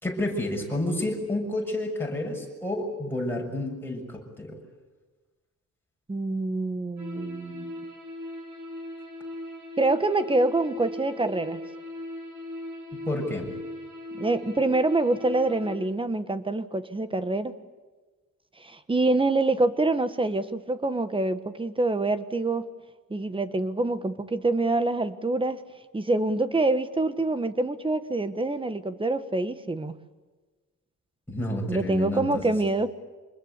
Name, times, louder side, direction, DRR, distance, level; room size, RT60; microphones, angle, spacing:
voice 1, 0.0-4.6 12.9-13.5 31.3-32.5, left 1 dB, 5° left, -1 dB, 6.8 m, -30 dB
voice 2, 6.1-7.9 9.8-11.6 14.1-17.5 18.6-22.7 23.1-25.6 25.9-29.9 31.7-32.9, right 2 dB, 15° right, 12 dB, 1.4 m, -26 dB
sound 1, 7.0-15.8, left 1 dB, 70° right, 7.9 m, -39 dB
26.0 x 21.0 x 8.3 m, 1.3 s
wide cardioid pair, 135°, 31 cm